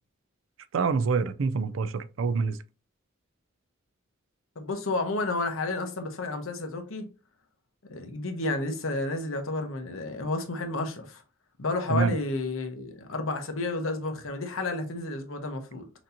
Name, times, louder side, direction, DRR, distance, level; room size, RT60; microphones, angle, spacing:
voice 1, 0.7-2.6 11.9-12.1, right 5 dB, 70° right, 0.4 m, -26 dB
voice 2, 4.6-7.1 7.9-11.2 11.6-15.8, left 2 dB, 80° left, 0.9 m, -31 dB
6.0 x 2.8 x 2.7 m
head